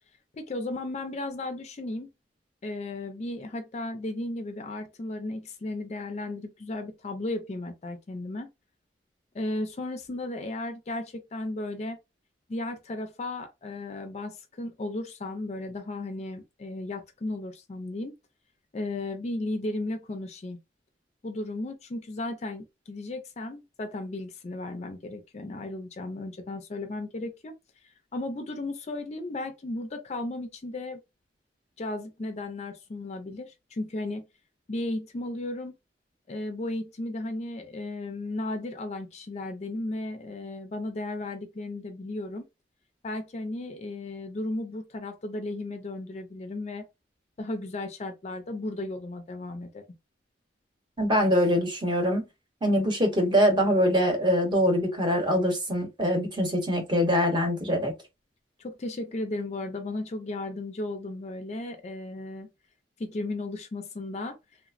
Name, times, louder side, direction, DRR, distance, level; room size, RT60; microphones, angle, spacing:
voice 1, 0.3-2.1 2.6-8.5 9.3-12.0 12.5-18.1 18.7-20.6 21.2-27.5 28.1-31.0 31.8-34.2 34.7-35.7 36.3-42.4 43.0-46.8 47.4-49.8 58.6-62.5 63.0-64.4, left 2 dB, 40° left, 0.4 m, -35 dB
voice 2, 51.0-52.3 52.6-57.9, equal, 25° right, 0.8 m, -23 dB
3.1 x 2.0 x 2.4 m
head